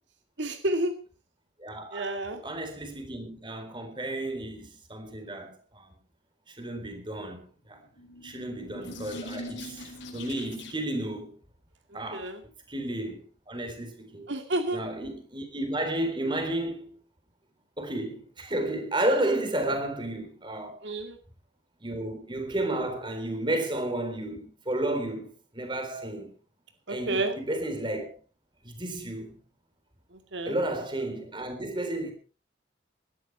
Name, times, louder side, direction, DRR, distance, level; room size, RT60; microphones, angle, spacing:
voice 1, 0.4-0.9 1.9-2.4 12.1-12.4 14.3-14.8 20.8-21.2 26.9-27.3 30.3-30.5, right 2 dB, 75° right, 2.3 m, -29 dB
voice 2, 1.6-6.0 6.5-7.8 8.2-11.4 11.9-12.3 12.7-14.3 14.7-17.0 17.8-20.8 21.8-26.3 26.9-28.1 28.6-29.4 30.5-32.1, right 1 dB, 25° right, 3.7 m, -32 dB
sound 1, 7.8-11.0, left 1 dB, 80° left, 4.4 m, -42 dB
19.0 x 13.0 x 4.5 m
head